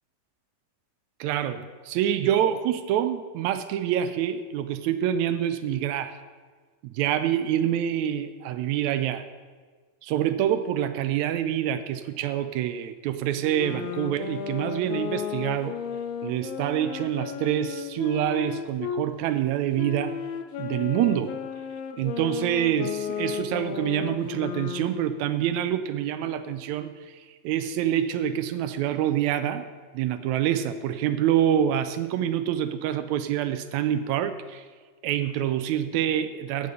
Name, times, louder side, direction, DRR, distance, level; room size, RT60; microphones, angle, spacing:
voice 1, 1.2-6.2 6.9-9.3 10.0-15.8 16.2-20.1 20.6-21.4 22.0-29.7 29.9-34.7 35.0-36.7, right 10 dB, 80° right, 11 dB, 1.7 m, -26 dB
sound 1, 13.4-19.1 19.7-25.1, left 8 dB, 75° left, 1.6 m, -34 dB
16.0 x 5.3 x 6.8 m, 1.5 s
omnidirectional pair, 3.7 m